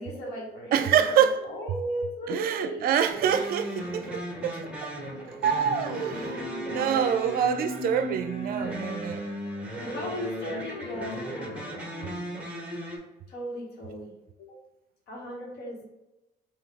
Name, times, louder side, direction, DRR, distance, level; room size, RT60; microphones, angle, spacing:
voice 1, 0.0-3.0 6.1-7.0 9.8-11.6 13.3-14.1 14.4-14.6 15.1-15.8, equal, 75° left, 1.5 m, -36 dB
voice 2, 0.7-1.4 2.3-4.9 5.4-9.2, right 8 dB, 60° right, 0.4 m, -26 dB
sound 1, 3.1-13.0, equal, 5° right, 1.0 m, -36 dB
Wind instrument woodwind instrument, 5.6-8.0 8.3-12.4, left 3 dB, 35° left, 0.8 m, -44 dB
3.8 x 2.7 x 3.4 m
cardioid pair, 110°, 17 cm